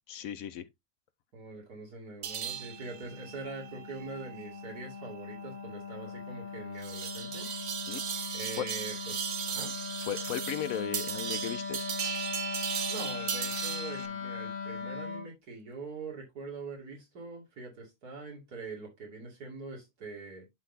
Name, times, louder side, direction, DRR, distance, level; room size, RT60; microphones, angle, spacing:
voice 1, 0.1-0.6 7.9-8.0 8.6-8.7 10.0-11.9, left 9 dB, 70° left, 1.0 m, -36 dB
voice 2, 1.3-7.5 8.3-9.1 9.5-9.7 12.9-20.5, right 3 dB, 75° right, 2.8 m, -43 dB
sound 1, 2.2-14.1, right 8 dB, 55° right, 0.9 m, -37 dB
Wind instrument woodwind instrument, 2.4-15.3, left 5 dB, 40° left, 0.8 m, -40 dB
11.5 x 3.9 x 2.6 m
omnidirectional pair, 1.7 m